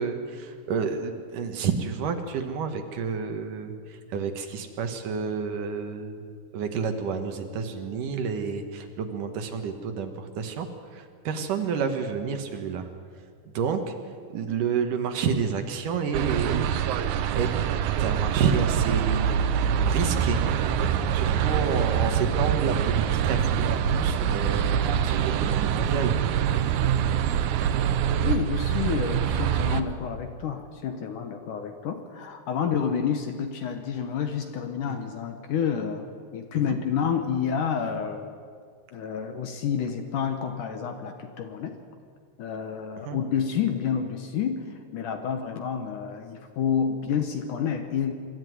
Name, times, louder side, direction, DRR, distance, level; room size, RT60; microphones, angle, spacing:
voice 1, 0.0-6.2 6.5-12.9 13.5-13.9 14.3-16.8 17.3-17.5 18.0-19.3 19.8-20.4 20.8-26.2 34.9-35.0 36.7-36.8 43.1-43.2, right 6 dB, 60° right, 6 dB, 2.6 m, -29 dB
sound 1, 16.1-29.8, right 8 dB, 85° right, 1.7 m, -25 dB
voice 2, 28.2-36.1 36.3-38.3 38.9-41.8 42.4-44.6 44.9-48.1, left 7 dB, 65° left, 6 dB, 2.2 m, -29 dB
25.0 x 13.0 x 9.4 m, 2.1 s
omnidirectional pair, 4.7 m